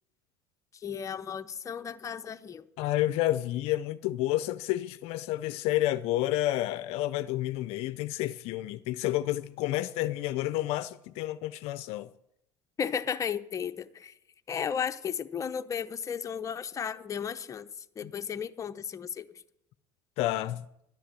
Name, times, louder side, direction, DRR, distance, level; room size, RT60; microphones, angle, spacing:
voice 1, 0.7-2.7 12.8-14.1 14.5-19.4, left 7 dB, 30° left, 0.8 m, -34 dB
voice 2, 2.8-12.1 18.0-18.1 20.2-20.7, left 15 dB, 65° left, 0.5 m, -30 dB
11.5 x 10.0 x 7.6 m
supercardioid pair, 105°, 11 cm